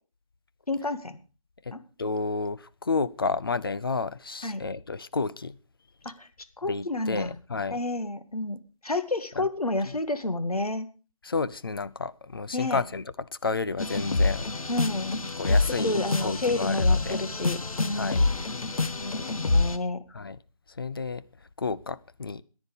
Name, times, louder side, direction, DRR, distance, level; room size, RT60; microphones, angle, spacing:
voice 1, 0.7-1.2 1.7-1.8 4.4-4.6 6.0-6.3 6.6-7.3 7.7-8.6 8.8-10.9 12.5-12.8 14.7-15.2 15.5-18.3 19.0-20.0, left 2 dB, 85° left, 2.0 m, -30 dB
voice 2, 1.7-5.6 6.7-7.8 9.4-9.5 9.9-10.0 11.2-14.5 15.4-17.2 17.9-18.2 20.1-20.4 20.8-21.2 21.6-22.4, left 4 dB, 40° left, 0.6 m, -31 dB
sound 1, 13.8-19.8, left 3 dB, 70° left, 1.4 m, -26 dB
14.0 x 10.5 x 5.3 m
figure-of-eight pair, 160°, 18 cm